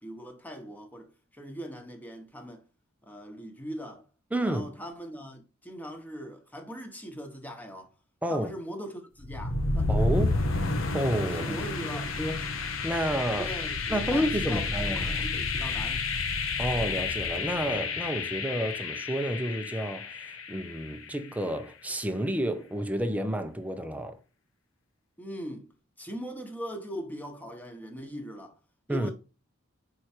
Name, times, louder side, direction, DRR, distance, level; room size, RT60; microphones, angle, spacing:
voice 1, 0.0-2.6 3.0-4.1 4.4-7.9 8.3-10.0 11.3-12.1 13.4-16.1 25.2-28.5 28.9-29.1, equal, 10° left, 1.3 m, -41 dB
voice 2, 4.3-4.7 8.2-8.5 9.9-10.4 10.9-11.6 11.8-11.9 12.2-12.5 12.8-13.5 13.9-15.2 16.6-20.1 20.5-24.2 28.9-29.1, equal, 10° right, 0.7 m, -30 dB
sound 1, 9.2-21.1, left 3 dB, 85° left, 1.1 m, -30 dB
6.3 x 4.8 x 4.4 m
head